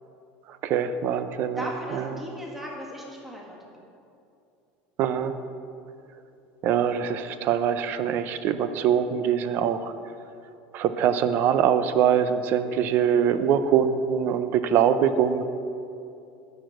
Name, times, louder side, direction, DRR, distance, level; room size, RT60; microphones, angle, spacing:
voice 1, 0.6-2.1 5.0-5.3 6.6-9.9 10.7-15.4, right 8 dB, 45° right, 11 dB, 0.5 m, -23 dB
voice 2, 1.6-3.6, equal, 5° right, -3 dB, 1.6 m, -37 dB
10.5 x 4.8 x 7.7 m, 2.6 s
supercardioid pair, 135°, 4 cm